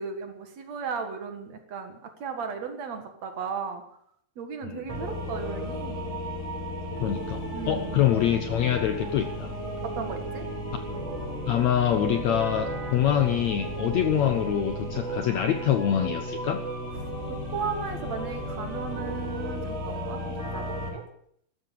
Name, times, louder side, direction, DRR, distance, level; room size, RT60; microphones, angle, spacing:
voice 1, 0.0-3.8 4.4-6.2 7.5-8.0 9.8-10.5 17.3-20.6 20.9-21.0, right 6 dB, 50° right, 6 dB, 2.6 m, -35 dB
sound 1, 4.9-20.9, equal, 10° right, 4.0 m, -34 dB
voice 2, 7.0-9.6 11.5-16.6, left 10 dB, 85° left, 8 dB, 1.6 m, -25 dB
13.5 x 12.5 x 7.7 m, 0.68 s
omnidirectional pair, 4.3 m